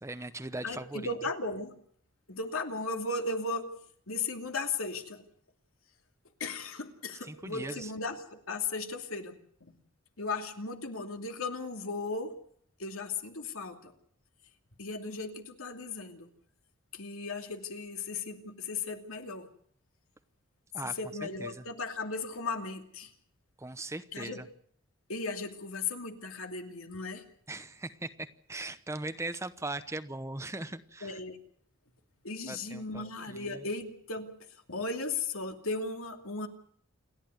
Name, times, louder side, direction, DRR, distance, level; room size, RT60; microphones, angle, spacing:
voice 1, 0.0-1.1 7.2-7.9 20.7-20.9 21.2-21.7 23.6-24.5 27.5-31.2 32.5-33.7, right 2 dB, 15° right, 11 dB, 0.9 m, -39 dB
voice 2, 0.6-1.7 2.3-3.7 4.1-5.2 6.4-9.4 9.6-9.8 10.2-12.4 12.8-13.9 14.8-16.3 16.9-19.5 20.8-23.1 24.1-24.4 25.1-27.2 31.0-31.4 32.2-34.3 34.7-36.5, left 3 dB, 75° left, 5 dB, 2.7 m, -36 dB
28.5 x 11.0 x 9.5 m, 0.63 s
head